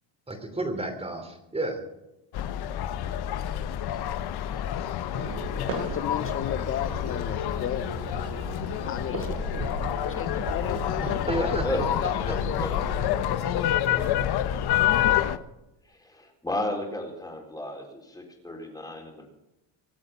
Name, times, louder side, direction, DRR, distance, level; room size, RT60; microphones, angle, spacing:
voice 1, 0.3-1.8 11.3-11.9, right 2 dB, 15° right, 6 dB, 3.0 m, -31 dB
sound 1, 2.3-15.4, left 11 dB, 60° left, 1.0 m, -28 dB
sound 2, 5.1-13.3, right 5 dB, 75° right, 2.7 m, -38 dB
voice 2, 5.7-8.1 8.8-9.4 10.1-11.2 11.5-12.2 12.4-12.6, left 11 dB, 30° left, 13 dB, 0.5 m, -34 dB
Bird, 6.5-13.0, right 5 dB, 50° right, 2.5 m, -44 dB
voice 3, 11.4-11.8 12.3-12.7 13.5-14.1 15.9-19.3, left 1 dB, 10° left, 1 dB, 4.0 m, -34 dB
25.0 x 8.6 x 5.9 m, 0.94 s
cardioid pair, 150°, 43 cm